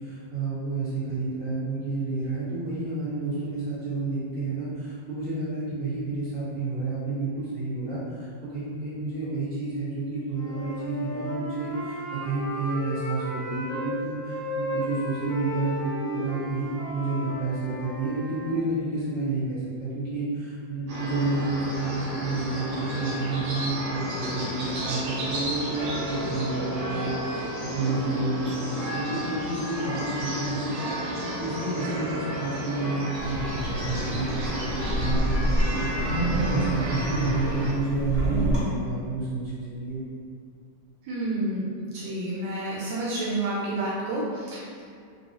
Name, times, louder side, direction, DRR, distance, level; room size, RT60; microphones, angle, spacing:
voice 1, 0.0-40.0, right 3 dB, 35° right, -11 dB, 1.5 m, -30 dB
Wind instrument woodwind instrument, 10.3-13.9 14.3-18.5, equal, 90° left, 1.7 m, -35 dB
sound 1, 20.9-37.7, equal, 60° right, 1.2 m, -32 dB
Wind, 33.1-38.6, right 1 dB, 15° right, 0.7 m, -28 dB
voice 2, 41.1-44.8, right 2 dB, 80° right, -6 dB, 1.3 m, -30 dB
3.7 x 2.3 x 2.8 m, 2.3 s
omnidirectional pair, 2.0 m